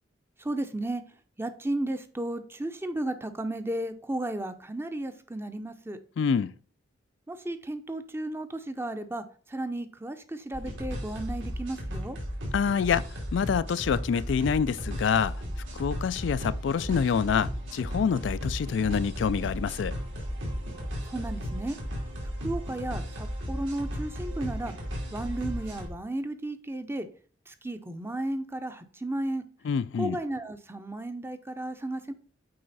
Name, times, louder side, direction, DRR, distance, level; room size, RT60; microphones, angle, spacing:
voice 1, 0.4-1.0 1.4-6.0 7.3-12.2 21.1-21.8 22.4-24.7 25.1-27.1 27.5-29.4 30.0-32.1, right 1 dB, 15° right, 0.6 m, -34 dB
voice 2, 6.2-6.5 12.5-13.0 13.3-15.3 15.7-19.9 29.6-30.2, left 6 dB, 65° left, 0.3 m, -26 dB
sound 1, 10.5-25.9, equal, 80° right, 3.1 m, -35 dB
7.7 x 4.8 x 4.1 m
head